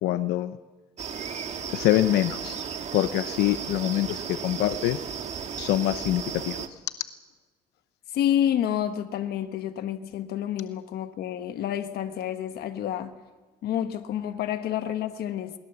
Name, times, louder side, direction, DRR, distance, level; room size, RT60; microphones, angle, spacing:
voice 1, 0.0-0.6 1.7-2.6 2.9-5.0 5.6-6.6, left 14 dB, 85° left, 0.8 m, -25 dB
sound 1, 1.0-6.7, right 7 dB, 40° right, 1.6 m, -35 dB
voice 2, 8.1-13.1 13.6-15.5, left 10 dB, 70° left, 1.3 m, -29 dB
21.5 x 20.5 x 7.1 m
cardioid pair, 110°, 17 cm